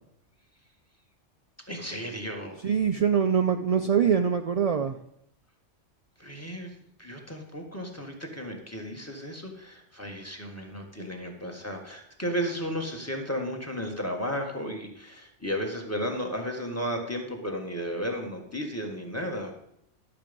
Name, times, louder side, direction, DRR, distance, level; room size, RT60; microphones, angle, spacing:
voice 1, 1.7-2.6 6.2-19.5, equal, 10° left, 3 dB, 1.6 m, -34 dB
voice 2, 2.6-5.0, right 7 dB, 60° right, 7 dB, 0.4 m, -23 dB
12.0 x 6.8 x 5.3 m, 0.75 s
omnidirectional pair, 1.2 m